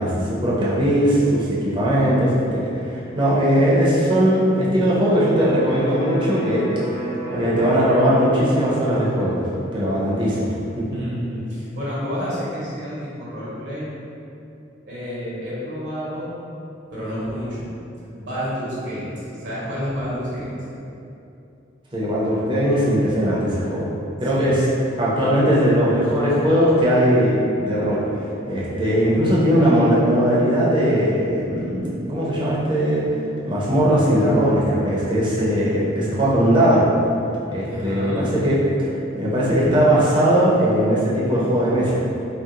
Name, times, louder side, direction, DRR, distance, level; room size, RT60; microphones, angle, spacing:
voice 1, 0.0-6.7 6.9-7.0 7.3-9.5 9.7-10.9 21.9-23.9 24.2-24.7 25.0-28.0 28.5-33.0 33.4-36.9 37.5-38.6 39.1-42.0, equal, 25° right, -7 dB, 0.6 m, -19 dB
Electric guitar, 5.3-13.0, right 1 dB, 20° left, 0.6 m, -35 dB
voice 2, 10.9-13.9 14.9-16.4 16.9-17.7 18.1-20.5 24.2-24.7 37.7-38.3, equal, 65° right, -9 dB, 0.8 m, -30 dB
2.8 x 2.0 x 3.6 m, 2.7 s
head